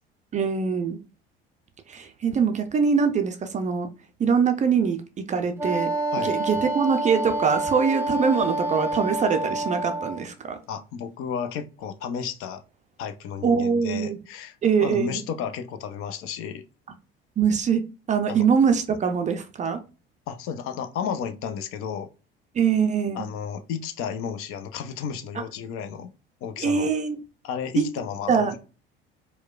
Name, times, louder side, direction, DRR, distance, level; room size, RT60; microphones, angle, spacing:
voice 1, 0.3-1.0 1.9-3.9 4.2-5.9 6.2-10.6 13.4-14.2 14.6-15.2 17.4-19.8 22.5-23.2 26.6-27.2 27.8-27.9 28.3-28.6, right 6 dB, 25° right, 0.5 m, -23 dB
Wind instrument woodwind instrument, 5.6-10.2, right 2 dB, 10° right, 0.8 m, -28 dB
voice 2, 10.7-12.6 13.0-14.5 14.8-16.6 18.3-18.4 20.3-22.1 23.1-26.1 26.4-26.9 27.4-28.6, left 7 dB, 45° left, 0.5 m, -32 dB
4.5 x 2.1 x 2.3 m
figure-of-eight pair, 60°, 30 cm